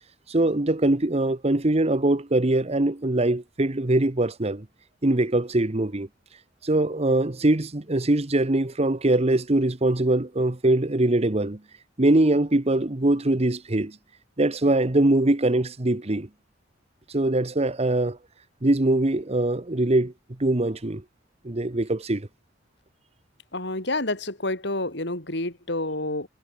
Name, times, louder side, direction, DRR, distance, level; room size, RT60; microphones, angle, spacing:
voice 1, 0.3-4.6 5.0-6.1 6.6-11.6 12.0-13.9 14.4-16.3 17.1-18.2 18.6-20.1 20.4-21.0 21.4-22.3, right 1 dB, 35° right, 1.2 m, -22 dB
voice 2, 23.5-26.3, left 2 dB, 65° left, 5.9 m, -29 dB
head